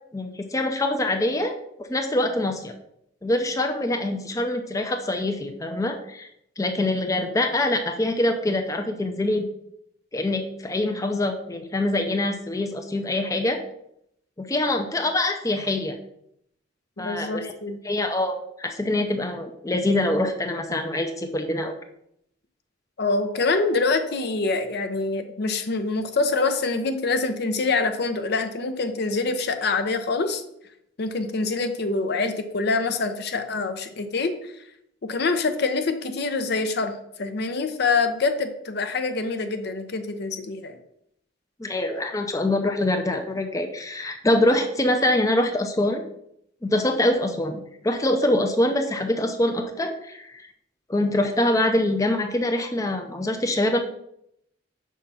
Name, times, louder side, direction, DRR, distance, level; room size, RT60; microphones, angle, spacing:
voice 1, 0.1-1.5 1.9-2.7 3.2-6.3 6.6-9.4 10.1-13.6 14.4-16.0 17.0-17.5 17.8-21.7 41.6-46.0 46.6-50.4 50.9-53.8, left 1 dB, 20° left, 5 dB, 0.5 m, -24 dB
voice 2, 17.0-17.8 23.0-30.4 31.0-34.6 35.0-40.8, left 3 dB, 60° left, 8 dB, 0.6 m, -25 dB
5.6 x 3.7 x 5.5 m, 0.75 s
head